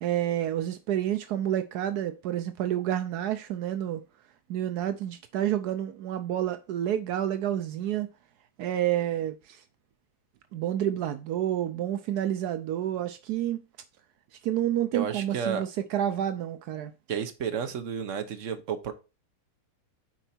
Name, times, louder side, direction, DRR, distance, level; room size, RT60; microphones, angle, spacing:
voice 1, 0.0-4.0 4.5-8.1 8.6-9.6 10.5-13.6 14.4-16.9, right 11 dB, 80° right, 0.8 m, -29 dB
voice 2, 14.9-15.6 17.1-18.9, right 7 dB, 50° right, 1.0 m, -31 dB
9.1 x 4.4 x 4.4 m
omnidirectional pair, 2.3 m